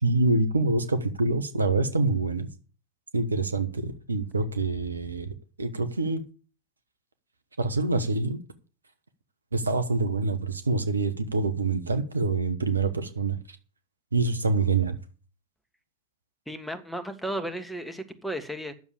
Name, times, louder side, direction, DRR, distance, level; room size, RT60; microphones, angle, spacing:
voice 1, 0.0-2.5 3.1-5.3 5.6-6.2 7.6-8.4 9.5-13.6 14.1-15.0, right 3 dB, 85° right, 1.2 m, -26 dB
voice 2, 16.5-18.7, right 1 dB, ahead, 1.6 m, -34 dB
9.4 x 7.1 x 8.3 m
figure-of-eight pair, 90°, 0 cm